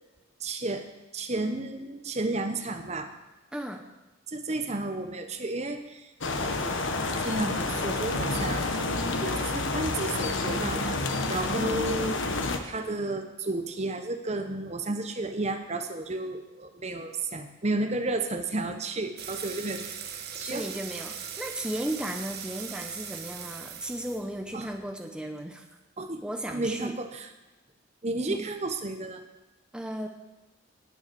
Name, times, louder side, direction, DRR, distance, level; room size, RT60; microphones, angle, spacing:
voice 1, 0.4-0.8 1.1-3.1 4.3-6.1 6.4-6.8 7.2-8.7 9.2-11.0 11.3-12.2 12.7-19.8 20.3-20.7 24.5-24.7 26.0-27.3 28.0-29.2, right 2 dB, 30° right, 7 dB, 1.0 m, -32 dB
voice 2, 3.5-3.8 11.5-12.1 20.4-25.6 26.2-26.9 28.3-28.5 29.7-30.1, right 1 dB, 5° right, 3 dB, 0.9 m, -35 dB
sound 1, 6.2-12.6, left 2 dB, 65° left, 1.3 m, -29 dB
sound 2, 19.2-24.9, right 7 dB, 50° right, 1.4 m, -40 dB
18.5 x 7.1 x 7.0 m, 1.1 s
head